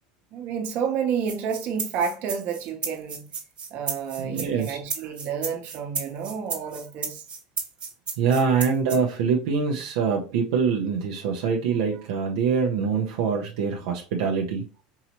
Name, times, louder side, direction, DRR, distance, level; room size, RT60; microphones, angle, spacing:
voice 1, 0.3-3.3 3.7-7.2, right 7 dB, 55° right, 1.0 m, -30 dB
sound 1, 1.3-9.0, right 5 dB, 30° right, 1.2 m, -33 dB
voice 2, 4.2-4.8 8.2-14.7, right 6 dB, 75° right, 0.6 m, -24 dB
4.6 x 2.9 x 2.9 m
supercardioid pair, 115°, 4 cm